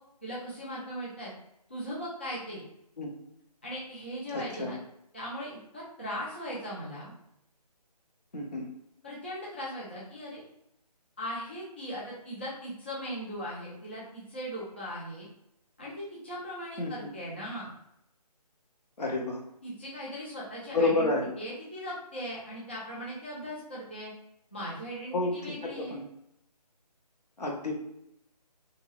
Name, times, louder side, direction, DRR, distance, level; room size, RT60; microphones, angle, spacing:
voice 1, 0.2-1.3 1.7-2.6 3.6-4.8 5.1-7.1 9.0-10.4 11.2-15.3 15.8-17.7 19.6-24.1 24.5-26.0, equal, 15° left, -7 dB, 0.3 m, -39 dB
voice 2, 4.3-4.7 8.3-8.7 16.8-17.1 19.0-19.4 20.7-21.3 25.1-25.3 25.6-26.1 27.4-27.7, left 2 dB, 75° left, -2 dB, 1.0 m, -29 dB
2.7 x 2.5 x 3.0 m, 0.77 s
figure-of-eight pair, 150°, 21 cm